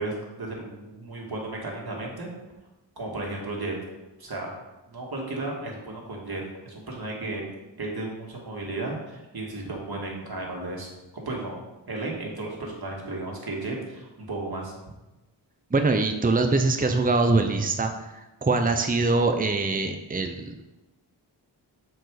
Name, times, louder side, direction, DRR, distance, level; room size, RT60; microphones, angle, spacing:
voice 1, 0.0-2.3 3.0-3.7 4.2-4.5 4.9-7.4 7.8-10.9 11.1-11.6 11.9-14.7, right 2 dB, 50° right, -2 dB, 2.3 m, -34 dB
voice 2, 15.7-17.9 18.4-20.6, right 3 dB, 20° right, 6 dB, 0.7 m, -23 dB
7.6 x 4.7 x 5.0 m, 1.0 s
cardioid pair, 50°, 47 cm